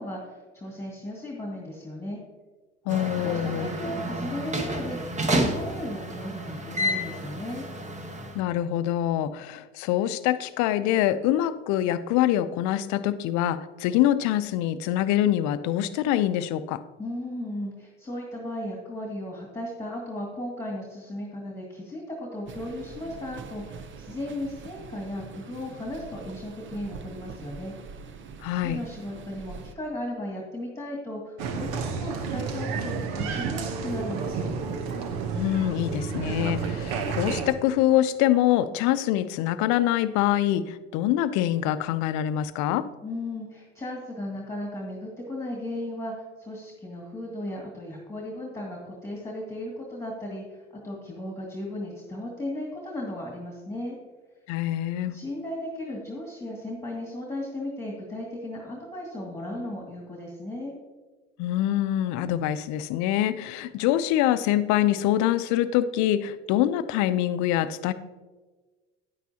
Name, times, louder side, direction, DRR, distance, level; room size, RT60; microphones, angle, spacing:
voice 1, 0.0-2.2 3.2-7.6 17.0-27.7 28.1-28.3 28.6-34.5 43.0-53.9 55.1-60.7, left 1 dB, 10° left, -2 dB, 2.1 m, -36 dB
voice 2, 2.9-3.8 8.3-16.8 28.4-28.8 35.3-42.9 54.5-55.2 61.4-67.9, left 12 dB, 60° left, 13 dB, 0.6 m, -25 dB
sound 1, 2.9-8.4, right 1 dB, 20° right, 1.2 m, -30 dB
sound 2, 22.5-29.7, right 5 dB, 40° right, 0.8 m, -44 dB
Applause, 31.4-37.5, right 5 dB, 70° right, 1.0 m, -30 dB
9.9 x 9.2 x 2.8 m, 1.3 s
hypercardioid pair, 75°, 32 cm